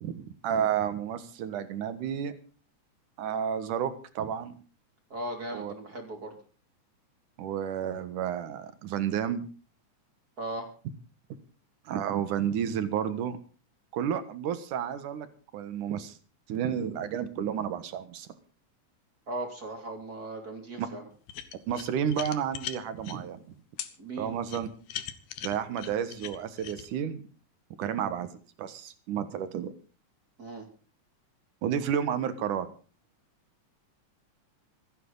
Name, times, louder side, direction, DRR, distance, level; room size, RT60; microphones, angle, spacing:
voice 1, 0.0-2.3 3.2-4.6 5.5-5.7 7.4-9.5 11.9-13.4 13.9-15.3 15.5-16.2 16.5-18.3 20.8-20.9 21.7-23.4 24.2-24.7 25.4-27.2 27.8-28.3 28.6-29.7 31.6-32.7, right 9 dB, 75° right, 11 dB, 2.9 m, -31 dB
voice 2, 5.1-6.4 10.4-10.7 19.3-21.0 24.0-24.3 30.4-30.7, right 2 dB, 30° right, 3 dB, 3.2 m, -37 dB
sound 1, 21.3-23.2 23.8-23.9 24.5-26.9, left 10 dB, 85° left, 2.8 m, -39 dB
26.5 x 9.5 x 3.9 m, 0.37 s
omnidirectional pair, 3.7 m